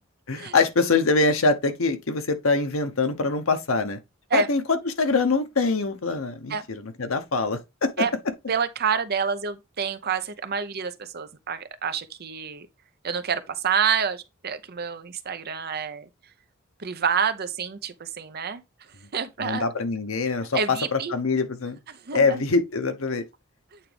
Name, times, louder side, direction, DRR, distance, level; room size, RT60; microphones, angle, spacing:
voice 1, 0.3-4.0 4.3-8.0 19.4-20.6 20.9-21.8 22.1-23.2, left 3 dB, 85° left, 1.0 m, -24 dB
voice 2, 8.5-12.7 13.0-16.1 16.8-18.6 19.1-19.6 20.5-21.2 21.9-22.5 23.7-23.8, right 6 dB, 50° right, 0.8 m, -28 dB
8.6 x 3.6 x 3.4 m
head